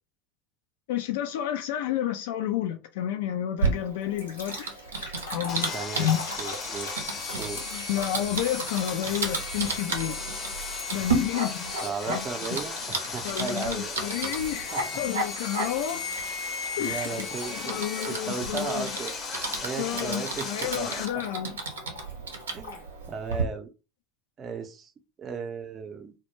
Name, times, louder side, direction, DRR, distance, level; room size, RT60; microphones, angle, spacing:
voice 1, 0.9-4.6 5.3-6.2 7.7-10.2 10.9-12.2 13.2-14.7 15.0-16.0 16.8-19.0 19.8-21.6 22.7-22.8, left 11 dB, 70° left, 0.3 m, -30 dB
Typing, 3.6-23.4, right 3 dB, 85° right, 0.6 m, -34 dB
sound 1, 4.2-11.1 11.8-12.6 13.1-13.4 14.9-22.9, left 2 dB, 90° left, 0.9 m, -43 dB
Sawing, 5.5-21.1, left 5 dB, 35° left, 0.6 m, -36 dB
voice 2, 5.7-6.1 6.4-7.6 11.8-13.9 14.7-15.0 16.8-19.1 19.6-21.2 22.5-23.7 24.4-24.9 25.2-26.1, right 5 dB, 35° right, 0.5 m, -36 dB
2.1 x 2.1 x 3.1 m
hypercardioid pair, 80°, 0 cm